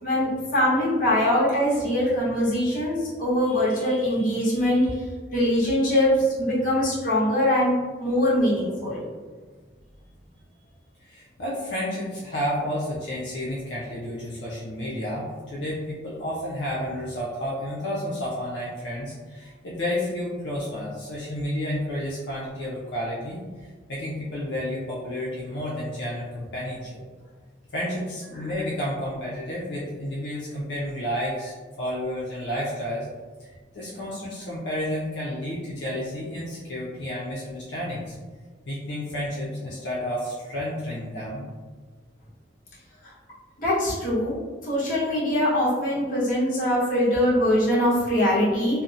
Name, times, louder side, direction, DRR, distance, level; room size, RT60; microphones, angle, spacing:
voice 1, 0.0-5.0 5.3-9.0 43.6-44.4 44.6-48.8, left 1 dB, 45° left, -8 dB, 0.9 m, -22 dB
voice 2, 11.0-23.4 23.9-26.9 27.7-33.1 33.4-33.5 33.7-38.2 38.7-41.4, left 1 dB, 70° left, -6 dB, 0.5 m, -31 dB
2.7 x 2.0 x 2.4 m, 1.4 s
head